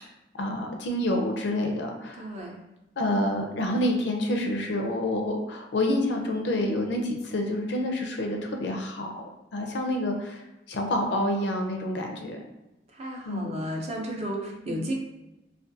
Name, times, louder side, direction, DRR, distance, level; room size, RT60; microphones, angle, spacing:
voice 1, 0.3-2.3 3.0-9.1 9.5-12.4 13.3-13.6 14.7-14.9, left 1 dB, 70° left, 3 dB, 0.4 m, -28 dB
voice 2, 2.2-2.6 12.9-14.9, equal, 35° right, 0 dB, 0.4 m, -33 dB
2.4 x 2.2 x 2.6 m, 0.97 s
head